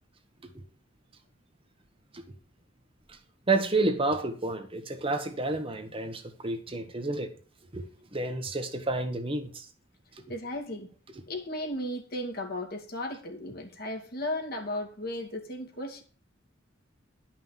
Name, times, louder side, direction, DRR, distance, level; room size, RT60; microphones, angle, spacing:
voice 1, 3.5-7.3 7.7-9.7, right 2 dB, 30° right, 1.3 m, -30 dB
voice 2, 10.3-10.9 11.3-16.0, left 1 dB, 50° left, 2.3 m, -35 dB
11.5 x 5.9 x 7.4 m
head